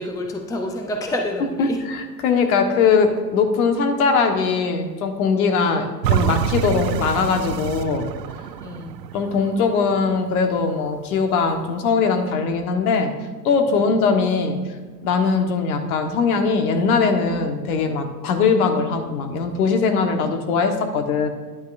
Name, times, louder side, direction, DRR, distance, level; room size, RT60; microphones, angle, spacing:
voice 1, 0.0-1.8 8.6-9.1 13.7-14.0, left 1 dB, 5° left, 3 dB, 0.7 m, -28 dB
voice 2, 1.6-8.1 9.1-13.1 13.4-14.6 15.0-21.3, left 5 dB, 60° left, 5 dB, 1.4 m, -20 dB
sound 1, 6.0-11.1 11.6-11.7, right 9 dB, 80° right, 0.6 m, -26 dB
10.5 x 9.4 x 2.6 m, 1.4 s
hypercardioid pair, 100°, 49 cm